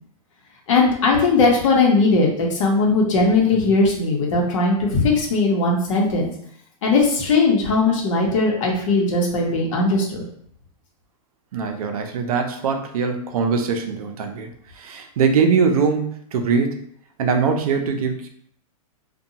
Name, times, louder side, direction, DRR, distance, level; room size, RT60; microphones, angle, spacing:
voice 1, 0.7-6.3 6.8-10.2, left 3 dB, 60° left, -1 dB, 0.8 m, -19 dB
voice 2, 11.5-16.9 17.2-18.3, right 5 dB, 75° right, 5 dB, 0.5 m, -22 dB
2.6 x 2.2 x 2.8 m, 0.65 s
supercardioid pair, 165°, 19 cm